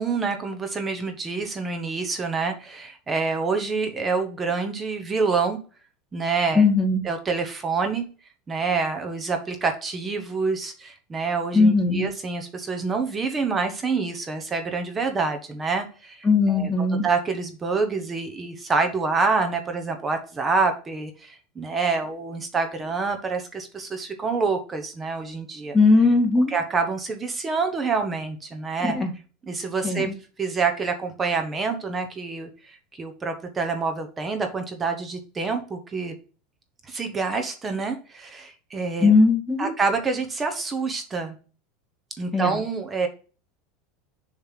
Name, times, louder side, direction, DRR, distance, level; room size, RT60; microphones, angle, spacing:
voice 1, 0.0-5.6 6.1-6.6 7.0-8.1 8.5-25.7 26.5-29.0 29.4-30.1 30.4-36.1 36.9-39.1 39.6-41.3 42.2-43.1, right 4 dB, 20° right, 5 dB, 1.0 m, -27 dB
voice 2, 6.6-7.0 11.5-12.1 16.2-17.0 25.7-26.5 28.8-29.1 29.8-30.1 39.0-39.7 42.3-42.6, left 3 dB, 10° left, 1 dB, 1.8 m, -19 dB
6.9 x 3.3 x 5.7 m, 0.37 s
supercardioid pair, 145°, 0 cm